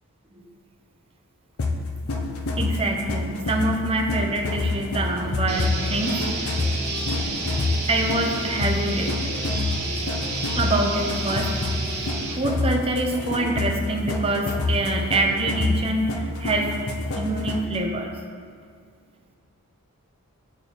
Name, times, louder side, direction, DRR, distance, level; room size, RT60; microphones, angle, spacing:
sound 1, 1.6-17.8, left 3 dB, 75° left, 0.6 m, -28 dB
voice 1, 2.6-6.2 7.9-9.3 10.6-11.6 12.0-16.8 17.1-18.1, right 2 dB, 25° right, 2 dB, 0.5 m, -25 dB
sound 2, 5.1-15.4, left 1 dB, 30° left, 1.3 m, -47 dB
sound 3, 5.5-12.3, right 3 dB, 50° right, 1.0 m, -30 dB
8.8 x 3.2 x 3.8 m, 2.1 s
head